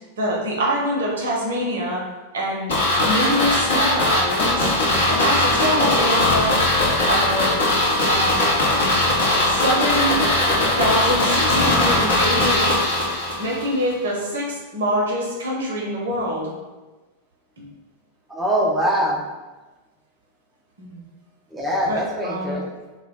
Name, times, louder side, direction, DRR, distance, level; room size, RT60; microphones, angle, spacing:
voice 1, 0.2-2.0 2.3-2.7 3.0-4.7 5.1-6.5 7.1-7.6 8.1-8.8 9.3-10.2 10.8-12.8 13.4-16.5 17.6-17.7 20.8-21.0 21.8-22.6, equal, 65° right, -3 dB, 0.6 m, -24 dB
sound 1, 2.7-13.6 13.9-14.0, left 2 dB, 60° left, 0.7 m, -19 dB
voice 2, 18.3-19.2 21.5-22.6, equal, 5° right, -3 dB, 0.4 m, -23 dB
2.2 x 2.1 x 3.3 m, 1.2 s
figure-of-eight pair, 90°, 0 cm